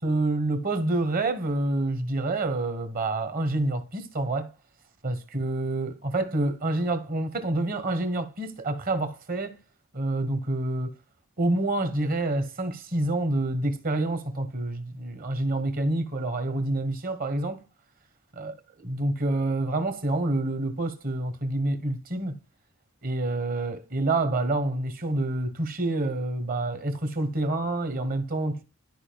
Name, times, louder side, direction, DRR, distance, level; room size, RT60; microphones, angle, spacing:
voice 1, 0.0-4.5 5.0-9.6 9.9-10.9 11.4-17.6 18.4-18.5 18.8-22.4 23.0-28.6, right 2 dB, 40° right, 1.3 m, -27 dB
12.5 x 5.0 x 2.3 m
head